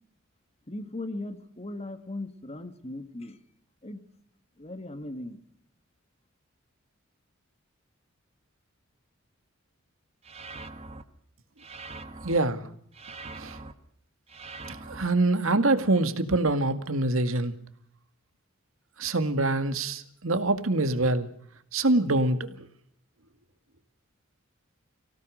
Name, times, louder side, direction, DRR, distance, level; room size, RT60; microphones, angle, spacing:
voice 1, 0.7-3.4 3.8-4.0 4.6-5.4, left 2 dB, 30° left, 9 dB, 1.9 m, -38 dB
sound 1, 10.2-11.0 11.6-12.4 12.9-13.7 14.3-15.1, right 3 dB, 30° right, 1.5 m, -42 dB
voice 2, 12.2-12.6 13.4-13.6 14.7-17.5 19.0-21.3 21.7-22.5, right 2 dB, 90° right, 9 dB, 2.1 m, -25 dB
25.0 x 17.5 x 6.5 m, 0.66 s
head